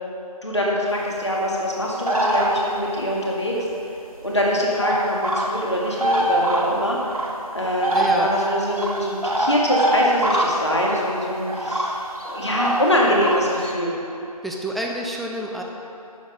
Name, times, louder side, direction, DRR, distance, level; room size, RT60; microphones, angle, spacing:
voice 1, 0.4-3.5 4.2-7.0 7.5-13.9, equal, 45° left, -3 dB, 1.9 m, -23 dB
sound 1, 2.1-2.9 4.2-4.3 4.8-5.6 5.9-7.3 7.8-11.1 11.5-13.7, right 1 dB, 65° right, 1.5 m, -23 dB
voice 2, 7.9-8.3 14.4-15.6, right 1 dB, ahead, -1 dB, 0.4 m, -28 dB
9.7 x 7.9 x 5.2 m, 2.8 s
figure-of-eight pair, 180°, 20 cm